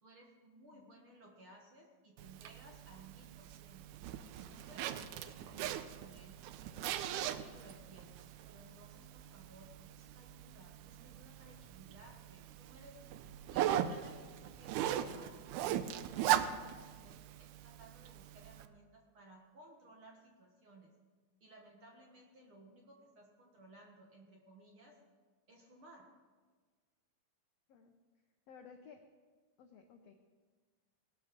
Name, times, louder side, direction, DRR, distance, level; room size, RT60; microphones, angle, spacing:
voice 1, 0.0-3.9 4.4-6.5 7.3-13.0 13.4-20.9 21.4-25.0 25.5-26.1, right 1 dB, 50° right, 1 dB, 1.9 m, -59 dB
Zipper (clothing), 2.2-18.7, right 11 dB, 80° right, 1.9 m, -40 dB
voice 2, 28.5-29.0 29.6-30.1, left 6 dB, 75° left, 4 dB, 1.5 m, -56 dB
19.0 x 12.0 x 5.2 m, 1.4 s
omnidirectional pair, 4.1 m